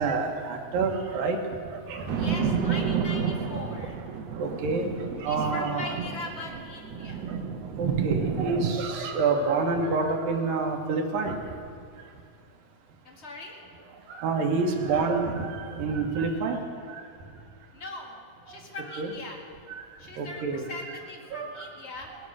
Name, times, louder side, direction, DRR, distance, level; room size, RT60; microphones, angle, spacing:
voice 1, 0.0-1.4 1.7-2.1 3.3-3.6 4.4-4.9 5.2-6.0 7.8-11.4 14.1-16.6 16.9-17.0 18.8-19.1 19.7-19.8 20.2-20.7 21.3-21.7 22.1-22.2, right 4 dB, 85° right, 2 dB, 3.2 m, -28 dB
voice 2, 2.1-4.0 5.3-7.2 13.0-13.6 17.7-18.2 18.5-19.4 20.0-22.1, left 2 dB, 30° left, 0 dB, 1.3 m, -40 dB
sound 1, 2.1-8.7, right 6 dB, 70° right, 1.7 m, -30 dB
18.5 x 12.5 x 6.3 m, 2.3 s
omnidirectional pair, 4.0 m